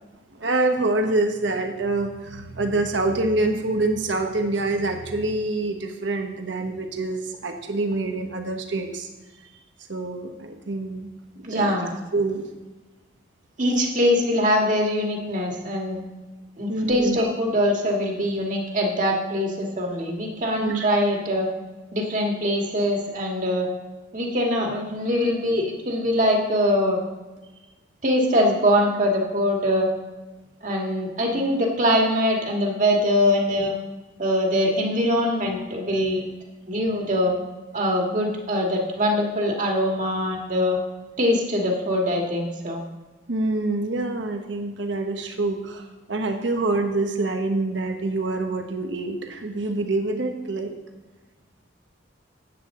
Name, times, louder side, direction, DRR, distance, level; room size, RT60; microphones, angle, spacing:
voice 1, 0.4-9.1 9.9-11.1 11.4-11.8 12.1-12.5 16.7-17.3 20.6-20.9 43.3-50.7, right 2 dB, 80° right, 4 dB, 1.1 m, -26 dB
voice 2, 11.4-11.9 13.6-16.0 16.6-21.5 21.9-23.7 24.1-27.0 28.0-29.9 30.6-33.7 34.2-36.3 36.7-37.3 37.7-40.8 41.2-42.8, equal, 45° right, 0 dB, 1.8 m, -23 dB
14.0 x 8.8 x 3.7 m, 1.2 s
head